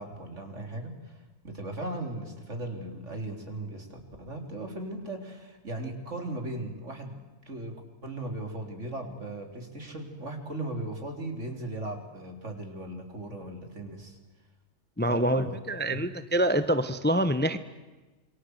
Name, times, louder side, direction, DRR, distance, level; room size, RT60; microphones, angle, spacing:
voice 1, 0.0-7.7 8.0-14.2 15.1-15.6 15.9-16.1, right 2 dB, 60° right, 5 dB, 4.1 m, -37 dB
voice 2, 15.0-17.6, equal, 10° left, 12 dB, 0.9 m, -26 dB
27.0 x 24.0 x 8.1 m, 1.2 s
omnidirectional pair, 1.4 m